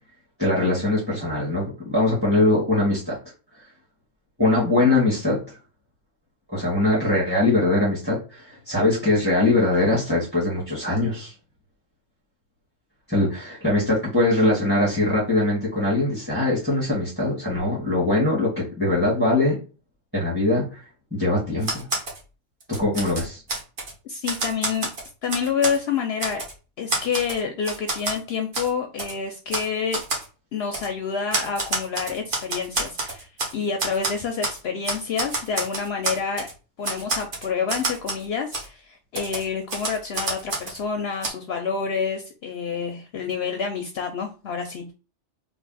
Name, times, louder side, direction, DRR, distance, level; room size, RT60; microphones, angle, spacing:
voice 1, 0.4-3.2 4.4-5.4 6.5-11.3 13.1-19.6 20.1-20.8 21.1-21.9 22.8-23.4, left 2 dB, 10° right, -6 dB, 1.7 m, -22 dB
Typewriter, 21.6-22.2 22.6-23.9 24.2-25.8 26.2-26.5 26.9-28.2 28.5-28.7 29.0-29.1 29.5-29.7 29.9-30.2 30.7-30.9 31.3-33.5 33.8-34.6 34.8-36.5 36.8-38.2 38.5-38.7 39.1-40.8 41.2-41.3, right 2 dB, 45° right, 1.2 m, -28 dB
voice 2, 24.0-24.9 25.2-26.4 26.8-30.0 30.5-36.5 36.8-44.9, left 6 dB, 65° left, 4 dB, 0.7 m, -28 dB
3.3 x 2.5 x 3.9 m, 0.33 s
omnidirectional pair, 1.3 m